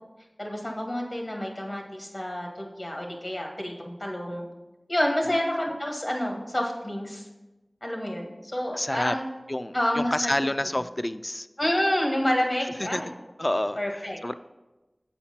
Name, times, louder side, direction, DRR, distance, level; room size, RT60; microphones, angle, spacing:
voice 1, 0.4-4.5 4.9-7.3 7.8-9.3 9.7-10.3 11.6-13.1 13.8-14.2, left 1 dB, 55° left, 0 dB, 1.6 m, -28 dB
voice 2, 8.7-9.2 9.5-11.5 12.8-13.0 13.4-14.3, left 1 dB, 35° left, 12 dB, 0.3 m, -29 dB
8.7 x 4.3 x 5.8 m, 1.1 s
wide cardioid pair, 45°, 0 cm